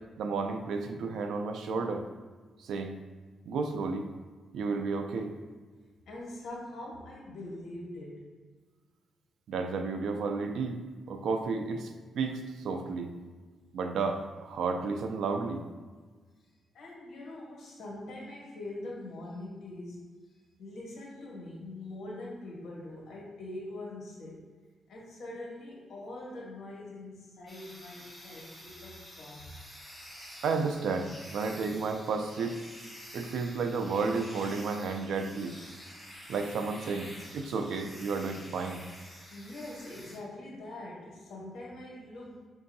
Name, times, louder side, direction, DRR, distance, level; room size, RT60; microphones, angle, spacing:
voice 1, 0.2-2.1 2.6-3.0 3.5-4.1 4.5-5.3 9.5-10.8 11.1-13.1 13.7-15.6 30.4-32.6 33.1-35.5 36.3-37.1 37.3-38.8, right 4 dB, 80° right, 5 dB, 0.4 m, -32 dB
voice 2, 6.1-8.4 16.7-20.1 20.6-24.6 24.9-29.5 39.3-42.5, left 1 dB, 65° left, -3 dB, 1.3 m, -43 dB
sound 1, 27.5-40.2, equal, ahead, 0.8 m, -49 dB
5.5 x 2.6 x 2.6 m, 1.4 s
cardioid pair, 145°, 0 cm